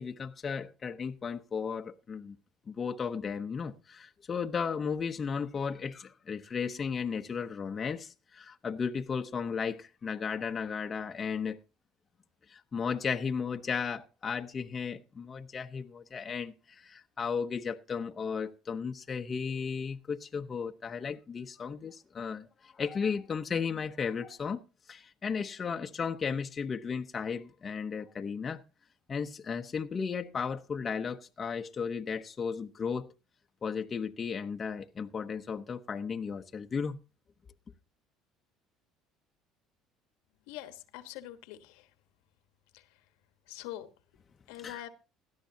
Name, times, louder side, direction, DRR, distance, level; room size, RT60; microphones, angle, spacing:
voice 1, 0.0-2.4 2.7-11.6 12.5-24.6 24.9-28.6 29.1-33.1 33.6-37.0 44.6-44.9, left 6 dB, 35° left, 0.9 m, -35 dB
voice 2, 40.5-41.6 43.5-43.9 44.5-44.9, left 14 dB, 85° left, 1.3 m, -43 dB
17.0 x 12.0 x 2.8 m
supercardioid pair, 95°, 0 cm